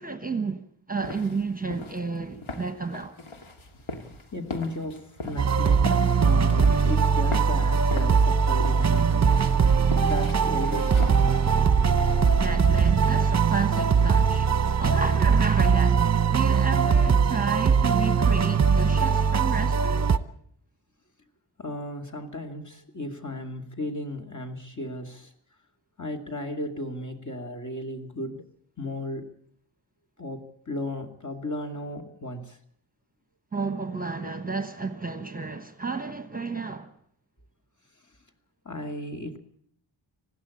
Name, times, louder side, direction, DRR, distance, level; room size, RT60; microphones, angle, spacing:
voice 1, 0.0-3.1 12.4-20.1 33.5-36.9, right 4 dB, 20° right, 1.2 m, -32 dB
sound 1, 1.0-12.2, left 3 dB, 90° left, 2.3 m, -40 dB
voice 2, 4.3-11.1 21.6-25.3 26.0-28.4 28.8-29.3 30.2-32.6 38.6-39.4, left 1 dB, 40° left, 2.6 m, -35 dB
sound 2, 5.4-20.2, right 6 dB, 35° right, 0.9 m, -21 dB
20.0 x 15.5 x 8.5 m
wide cardioid pair, 115°, 47 cm